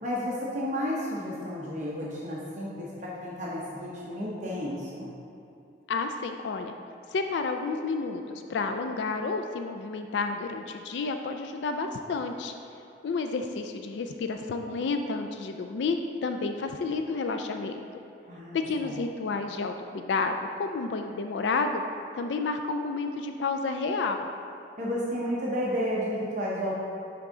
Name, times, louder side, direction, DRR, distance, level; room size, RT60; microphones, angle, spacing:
voice 1, 0.0-2.9 3.2-5.1 18.3-19.0 24.8-26.8, equal, 40° right, -6 dB, 0.8 m, -32 dB
voice 2, 5.9-6.7 7.1-12.5 13.0-17.8 18.5-21.8 22.1-24.3, left 4 dB, 75° left, 6 dB, 0.3 m, -30 dB
10.5 x 3.6 x 3.8 m, 2.7 s
head